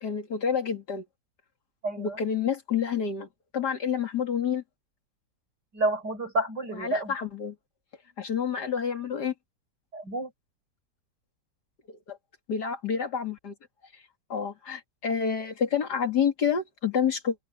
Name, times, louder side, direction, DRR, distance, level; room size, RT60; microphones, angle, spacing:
voice 1, 0.0-1.0 2.0-3.3 3.5-4.6 6.7-7.6 8.2-9.3 11.9-12.2 12.5-13.5 14.3-17.4, left 7 dB, 75° left, 3.0 m, -28 dB
voice 2, 1.8-2.2 5.7-7.1 9.9-10.3, right 2 dB, 90° right, 6.8 m, -29 dB
open air
omnidirectional pair, 1.8 m